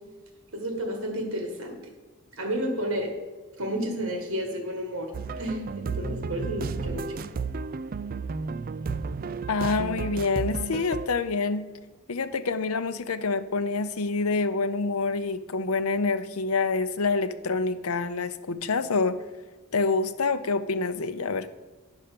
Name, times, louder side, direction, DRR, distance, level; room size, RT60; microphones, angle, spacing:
voice 1, 0.5-1.9 2.3-3.1 3.6-5.1 5.4-7.3, equal, 60° right, 3 dB, 1.7 m, -31 dB
sound 1, 5.1-11.1, right 4 dB, 40° right, 0.3 m, -33 dB
voice 2, 9.5-11.6 12.1-19.2 19.7-21.5, left 4 dB, 80° left, 11 dB, 0.7 m, -27 dB
10.0 x 5.7 x 6.8 m, 1.3 s
head